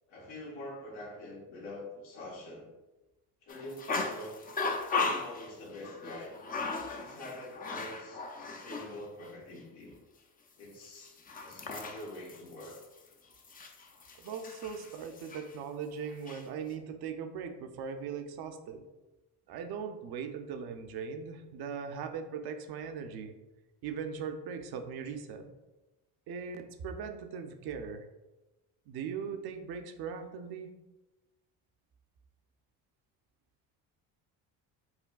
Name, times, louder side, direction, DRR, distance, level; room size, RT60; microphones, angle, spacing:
voice 1, 0.1-2.7 3.4-4.4 5.0-6.3 7.0-10.0 10.6-12.8, left 1 dB, 85° left, -3 dB, 1.3 m, -45 dB
sound 1, 3.5-9.0 9.2-9.3 10.8-15.6 16.0-16.4, left 4 dB, 20° left, 0.4 m, -37 dB
voice 2, 14.2-18.9 19.5-23.4 23.8-25.5 26.3-28.1 28.9-30.7, right 6 dB, 55° right, 7 dB, 0.6 m, -39 dB
5.7 x 2.2 x 2.3 m, 1.1 s
supercardioid pair, 80°, 45 cm